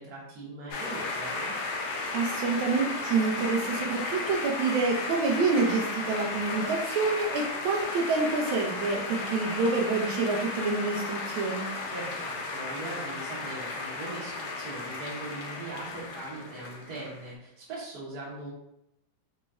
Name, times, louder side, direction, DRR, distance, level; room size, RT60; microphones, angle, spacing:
voice 1, 0.0-1.5 11.9-18.5, right 2 dB, 55° right, -7 dB, 1.3 m, -40 dB
sound 1, 0.7-17.3, left 3 dB, 70° left, 1.0 m, -34 dB
voice 2, 2.1-11.7, right 4 dB, 80° right, 0 dB, 1.4 m, -27 dB
4.0 x 3.1 x 2.3 m, 0.80 s
omnidirectional pair, 2.2 m